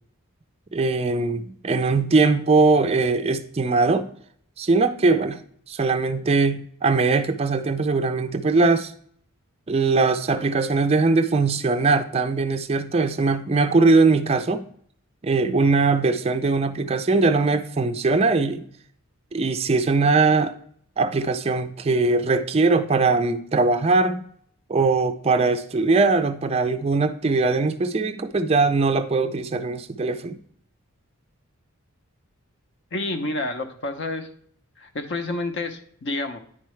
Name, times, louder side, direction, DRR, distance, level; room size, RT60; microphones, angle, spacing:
voice 1, 0.7-4.1 4.6-5.4 5.7-8.9 9.7-14.6 15.2-18.6 19.3-20.5 21.0-24.2 24.7-30.4, right 3 dB, 25° right, 0.4 m, -21 dB
voice 2, 32.9-34.3 34.8-36.4, left 2 dB, 50° left, 0.7 m, -29 dB
9.8 x 4.6 x 3.1 m
head